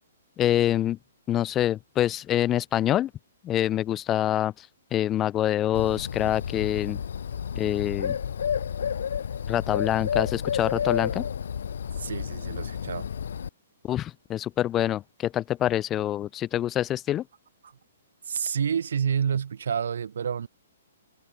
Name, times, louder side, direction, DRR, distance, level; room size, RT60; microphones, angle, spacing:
voice 1, 0.4-1.0 1.3-3.1 3.4-7.0 7.5-8.2 9.5-11.3 13.8-17.2, left 12 dB, 20° left, 1.1 m, -26 dB
Bird, 5.7-13.5, left 7 dB, 70° left, 0.9 m, -31 dB
voice 2, 12.0-13.1 17.6-17.8 18.2-20.5, right 7 dB, 70° right, 4.8 m, -29 dB
hypercardioid pair, 130°, 0 cm